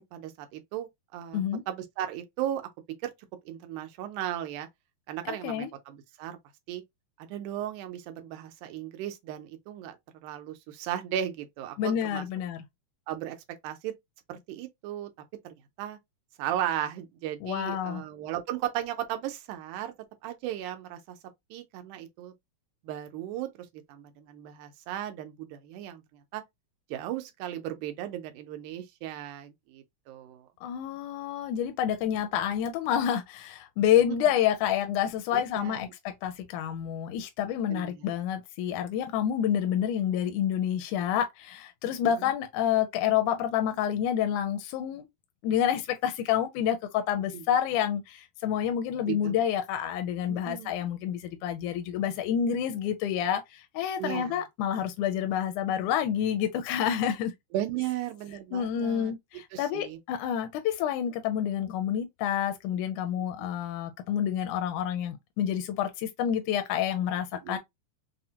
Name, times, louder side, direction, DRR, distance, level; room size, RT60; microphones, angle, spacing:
voice 1, 0.0-1.4 1.7-2.6 3.0-3.1 3.5-4.7 5.1-6.4 6.7-6.8 7.2-10.0 10.2-12.3 13.1-13.9 14.3-15.1 15.4-16.0 16.4-19.9 20.2-21.2 21.5-22.3 22.8-23.5 23.9-26.0 26.3-26.4 26.9-30.5 34.1-34.2 35.3-35.9 37.7-38.1 42.2-42.3 47.3-47.4 49.0-49.4 50.3-50.7 54.0-54.4 57.5-59.1 59.5-60.0 63.4-63.5 67.4-67.6, right 11 dB, 90° right, 2.1 m, -36 dB
voice 2, 5.3-5.7 11.8-12.6 17.4-18.0 30.6-45.1 45.4-57.3 58.5-67.6, left 9 dB, 85° left, 2.0 m, -28 dB
5.6 x 2.1 x 2.7 m
omnidirectional pair, 3.5 m